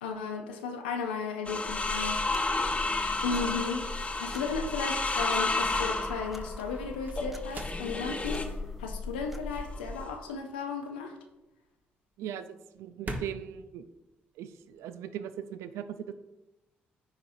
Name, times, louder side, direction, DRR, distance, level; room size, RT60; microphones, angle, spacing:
voice 1, 0.0-2.5 3.2-11.2, left 5 dB, 90° left, 4 dB, 0.5 m, -35 dB
sound 1, 1.2-14.9, right 1 dB, 35° right, 1.2 m, -47 dB
sound 2, 1.4-8.6 9.5-10.1, left 3 dB, 25° left, 0.9 m, -32 dB
sound 3, 1.7-10.0, left 2 dB, 5° right, 0.6 m, -41 dB
voice 2, 12.2-13.8 14.4-16.1, right 9 dB, 70° right, 11 dB, 0.4 m, -39 dB
9.9 x 4.1 x 2.6 m, 0.98 s
hypercardioid pair, 45°, 5 cm